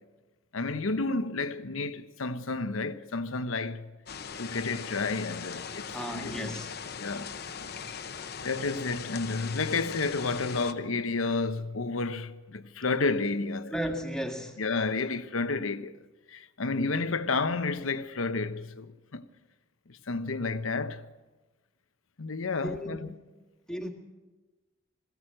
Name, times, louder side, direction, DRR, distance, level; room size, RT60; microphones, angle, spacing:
voice 1, 0.5-3.9 4.4-6.6 7.0-7.7 8.4-13.7 14.6-16.0 16.3-19.2 19.9-21.1 22.2-23.1, left 3 dB, 90° left, 0.9 m, -31 dB
sound 1, 4.1-10.7, left 6 dB, 50° left, 0.9 m, -40 dB
voice 2, 5.9-6.7 13.7-14.6 22.6-23.1 23.7-23.9, equal, 5° left, 1.9 m, -34 dB
21.5 x 16.0 x 7.7 m
head